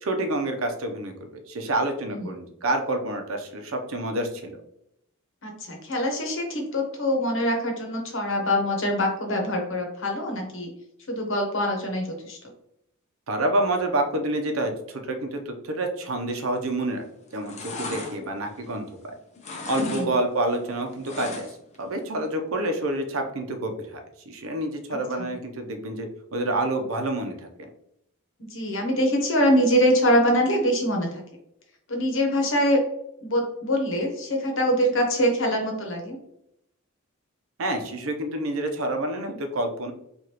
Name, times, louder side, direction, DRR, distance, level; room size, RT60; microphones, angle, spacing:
voice 1, 0.0-4.5 13.3-17.1 17.3-18.9 19.7-21.5 21.8-24.0 24.3-27.3 37.6-39.9, right 1 dB, 80° right, 4 dB, 0.7 m, -28 dB
voice 2, 5.4-10.7 11.1-12.4 19.8-20.1 28.4-31.1 31.9-32.8 33.2-36.2, equal, 65° left, 2 dB, 1.0 m, -24 dB
sound 1, 16.6-17.0 17.3-19.1 19.4-20.1 20.3-21.8 22.1-22.2, left 3 dB, 35° left, 0.7 m, -35 dB
4.9 x 2.5 x 2.9 m, 0.78 s
head